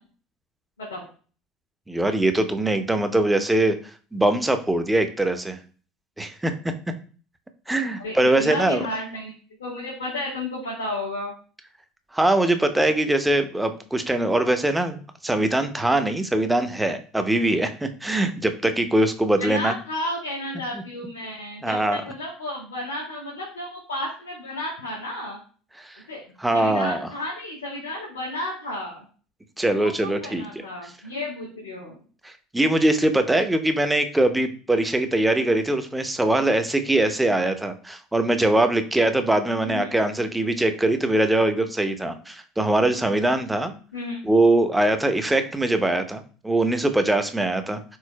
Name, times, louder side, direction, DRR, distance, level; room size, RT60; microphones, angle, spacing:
voice 1, 1.9-3.8 4.1-5.6 6.2-6.7 7.7-8.9 12.1-19.7 20.7-20.8 21.6-22.0 25.8-26.0 26.4-27.1 29.6-30.5 32.2-43.7 44.2-47.8, right 1 dB, 10° right, 8 dB, 0.7 m, -22 dB
voice 2, 8.0-9.3 9.6-11.3 19.4-25.4 26.1-26.2 26.5-29.0 29.7-32.0 39.6-39.9 43.9-44.2, left 1 dB, 85° left, -4 dB, 1.6 m, -32 dB
4.6 x 3.9 x 2.3 m, 0.40 s
hypercardioid pair, 70°, 0 cm